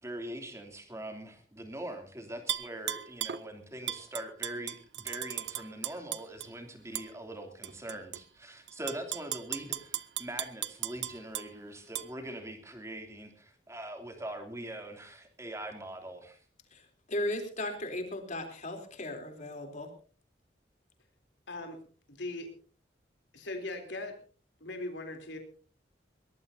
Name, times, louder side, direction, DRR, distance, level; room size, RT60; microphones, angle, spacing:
voice 1, 0.0-16.4, right 1 dB, 15° right, 5 dB, 3.0 m, -42 dB
Tap / Glass, 2.5-3.4 3.9-6.5 6.9-7.1 7.6-8.2 8.7-11.5 11.9-12.1, right 12 dB, 70° right, 0.7 m, -36 dB
voice 2, 17.1-19.9, left 1 dB, 45° left, 5 dB, 3.6 m, -36 dB
voice 3, 22.1-22.5 23.3-24.1 24.6-25.4, left 2 dB, 80° left, 4 dB, 3.4 m, -39 dB
22.0 x 19.5 x 2.8 m, 0.40 s
head